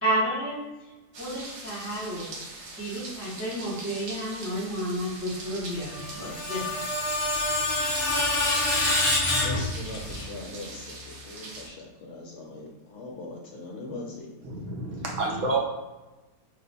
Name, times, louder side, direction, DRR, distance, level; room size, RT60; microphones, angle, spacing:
voice 1, 0.0-0.9 1.2-2.3 2.7-6.8, right 1 dB, 20° right, -7 dB, 0.3 m, -31 dB
sound 1, 1.1-11.7, right 2 dB, 85° right, 1.1 m, -42 dB
Screech, 5.9-10.2, left 2 dB, 50° left, 0.4 m, -26 dB
voice 2, 9.4-14.3, left 2 dB, 65° left, -1 dB, 0.8 m, -40 dB
voice 3, 14.4-15.6, right 3 dB, 65° right, -1 dB, 0.9 m, -29 dB
2.9 x 2.1 x 4.0 m, 1.1 s
omnidirectional pair, 1.5 m